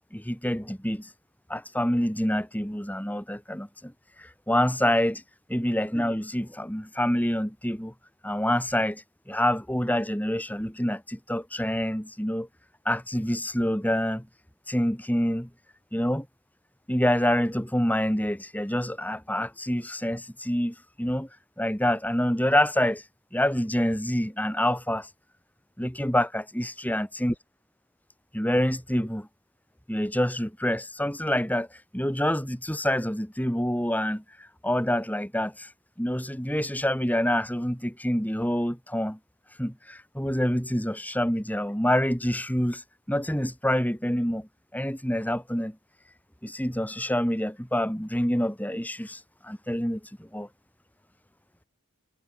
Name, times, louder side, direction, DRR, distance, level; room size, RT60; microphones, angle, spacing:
voice 1, 0.1-1.1 1.5-3.9 4.2-5.2 5.5-7.9 8.2-12.5 12.8-14.2 14.7-15.5 15.9-16.2 16.9-21.3 21.6-25.1 25.8-27.3 28.3-29.3 29.9-35.7 36.0-39.2 39.5-44.5 44.7-45.7 46.4-50.5, equal, 5° left, 7.9 m, -27 dB
head